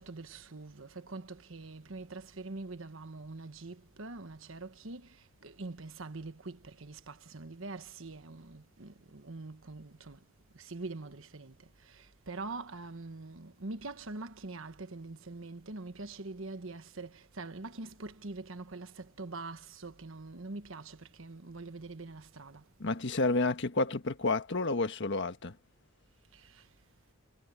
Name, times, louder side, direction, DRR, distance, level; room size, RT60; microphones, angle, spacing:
voice 1, 0.0-10.2 10.5-22.6 26.3-26.7, right 3 dB, 65° right, 1.3 m, -44 dB
voice 2, 22.8-25.5, left 3 dB, 60° left, 1.4 m, -30 dB
head